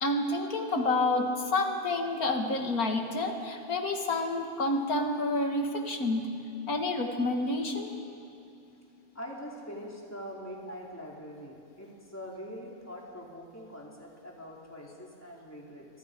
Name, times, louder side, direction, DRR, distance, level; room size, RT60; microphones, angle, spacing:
voice 1, 0.0-6.4 6.7-7.9, left 2 dB, 70° left, 3 dB, 2.4 m, -29 dB
voice 2, 9.1-15.9, equal, 10° left, -3 dB, 3.7 m, -43 dB
29.5 x 24.5 x 5.3 m, 2.6 s
omnidirectional pair, 1.6 m